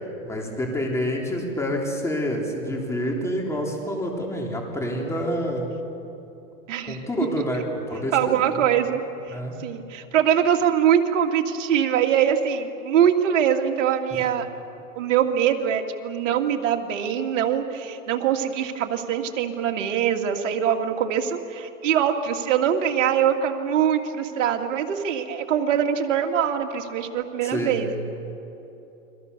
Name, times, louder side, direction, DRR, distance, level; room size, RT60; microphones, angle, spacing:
voice 1, 0.2-5.7 6.9-8.5 9.3-9.5 27.4-27.9, equal, 5° left, 0 dB, 3.5 m, -27 dB
voice 2, 8.1-9.0 9.3-14.5 15.0-28.0, right 9 dB, 65° right, 4 dB, 2.6 m, -23 dB
29.5 x 23.5 x 6.9 m, 3.0 s
supercardioid pair, 140°, 41 cm